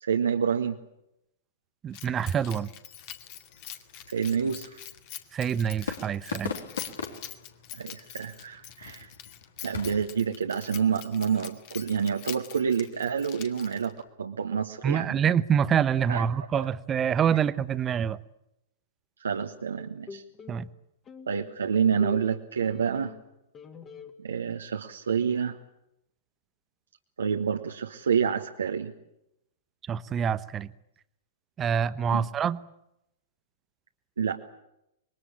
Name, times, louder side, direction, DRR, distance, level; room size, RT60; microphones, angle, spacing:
voice 1, 0.0-0.8 4.1-4.8 7.7-9.1 9.6-15.2 16.1-16.2 16.6-16.7 19.2-20.2 21.3-23.1 24.2-25.6 27.2-28.9 32.1-32.3 34.2-34.4, right 7 dB, 70° right, 3 dB, 1.5 m, -28 dB
voice 2, 1.8-2.7 5.3-6.5 14.8-18.2 20.5-20.7 29.9-30.7 31.6-32.6, right 8 dB, 20° right, 16 dB, 1.0 m, -26 dB
Keys jangling, 1.9-14.1, left 11 dB, 40° left, 2.3 m, -45 dB
sound 1, 3.0-10.1, left 6 dB, 65° left, 3.6 m, -41 dB
sound 2, 19.8-20.6 21.1-23.3 23.5-24.1, left 5 dB, 20° left, 2.8 m, -44 dB
26.5 x 22.5 x 8.8 m, 0.84 s
figure-of-eight pair, 100°, 0 cm